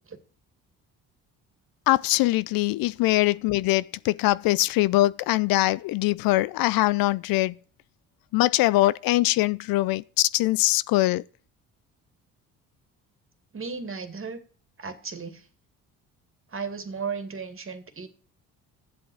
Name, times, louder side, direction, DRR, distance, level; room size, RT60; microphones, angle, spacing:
voice 1, 1.9-7.5 8.3-11.2, left 18 dB, 65° left, 0.5 m, -22 dB
voice 2, 13.5-14.4 14.8-15.4 16.5-18.1, right 5 dB, 35° right, 2.4 m, -35 dB
9.9 x 7.8 x 6.3 m
supercardioid pair, 65°, 38 cm